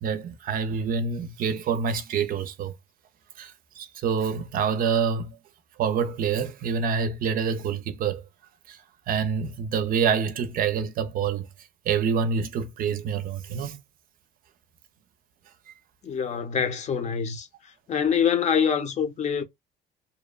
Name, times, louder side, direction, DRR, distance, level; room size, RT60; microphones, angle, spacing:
voice 1, 0.0-2.7 3.4-5.4 5.8-8.2 8.7-8.8 9.1-11.5 11.9-13.8, right 6 dB, 55° right, 0.5 m, -26 dB
voice 2, 16.0-17.5 17.9-19.4, left 7 dB, 45° left, 0.7 m, -25 dB
2.8 x 2.1 x 2.3 m
cardioid pair, 110°, 17 cm